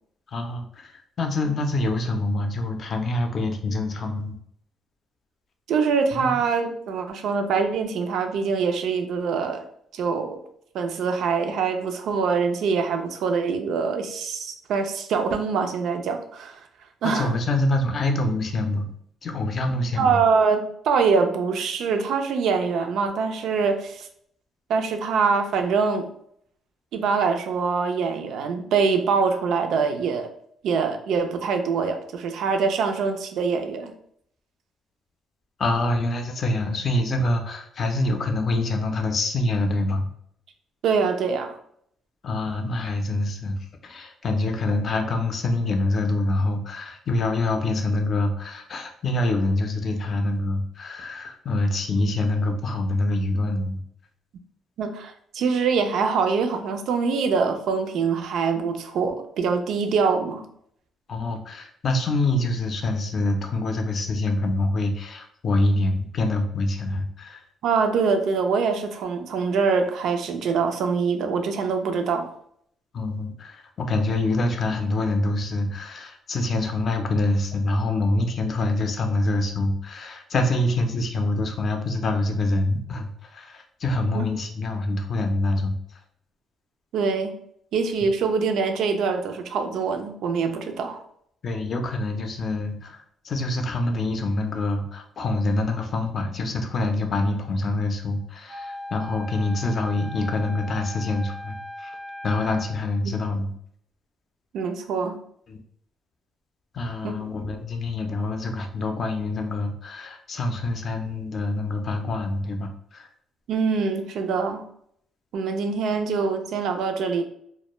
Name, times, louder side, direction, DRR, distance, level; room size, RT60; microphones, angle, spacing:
voice 1, 0.3-4.4 6.2-6.4 17.0-18.9 19.2-20.2 35.6-40.1 42.2-43.6 43.8-53.8 61.1-67.4 72.9-85.8 91.4-101.9 102.2-103.5 105.5-105.6 106.7-113.1, left 2 dB, 50° left, 5 dB, 0.4 m, -25 dB
voice 2, 5.7-9.6 9.9-10.4 10.7-16.6 17.0-17.3 20.0-24.1 24.7-26.1 26.9-30.3 30.6-33.9 40.8-41.6 54.8-60.4 67.6-72.3 84.1-84.3 86.9-87.4 87.7-91.0 104.5-105.2 107.0-107.1 113.5-114.7 115.3-117.2, right 5 dB, 75° right, 6 dB, 0.3 m, -24 dB
Wind instrument woodwind instrument, 98.5-102.9, left 1 dB, 10° right, 0.4 m, -38 dB
2.1 x 2.1 x 2.9 m, 0.67 s
cardioid pair, 90°, 0 cm